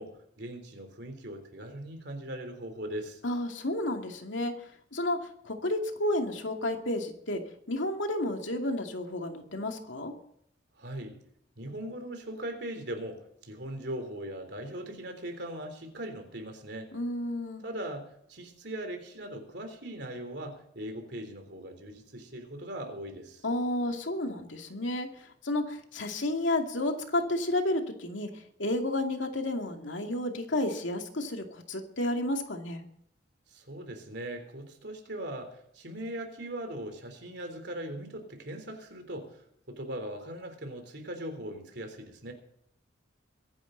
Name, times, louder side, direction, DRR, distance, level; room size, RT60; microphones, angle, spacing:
voice 1, 0.0-3.2 10.8-11.1 11.6-16.9 17.6-23.4 33.5-42.3, right 1 dB, 60° right, 5 dB, 3.6 m, -40 dB
voice 2, 3.2-4.5 4.9-7.4 7.7-10.1 16.9-17.6 23.4-25.1 25.4-28.3 28.6-32.8, left 1 dB, 85° left, 4 dB, 2.4 m, -31 dB
23.5 x 11.0 x 4.0 m, 0.71 s
head